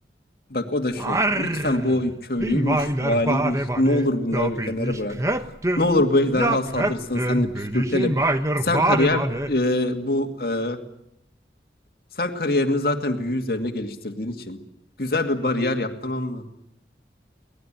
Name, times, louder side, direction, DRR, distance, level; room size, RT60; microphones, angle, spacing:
voice 1, 0.5-5.2 5.8-8.2 8.6-10.8 12.2-14.6 15.0-16.4, left 1 dB, 55° left, 5 dB, 2.3 m, -24 dB
Singing, 1.0-2.1 2.4-6.0 6.3-9.6, right 1 dB, 15° right, 1.0 m, -25 dB
24.0 x 19.0 x 9.0 m, 0.78 s
head